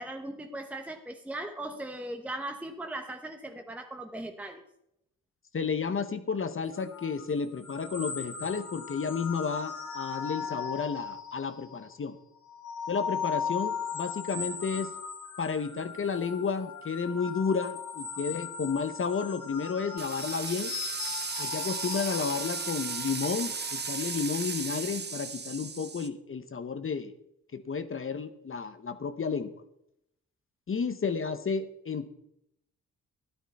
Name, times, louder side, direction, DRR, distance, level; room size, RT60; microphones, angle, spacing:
voice 1, 0.0-4.6, right 1 dB, 5° right, 5 dB, 1.0 m, -38 dB
voice 2, 5.5-12.2 12.9-14.9 15.4-20.7 21.4-27.1 27.5-29.5 30.7-32.1, left 5 dB, 35° left, 10 dB, 0.9 m, -32 dB
sound 1, 6.7-11.9 12.4-24.7, left 6 dB, 80° left, 3.9 m, -38 dB
sound 2, 20.0-26.1, right 5 dB, 30° right, 0.8 m, -35 dB
12.5 x 10.5 x 4.2 m, 0.78 s
cardioid pair, 90°, 35 cm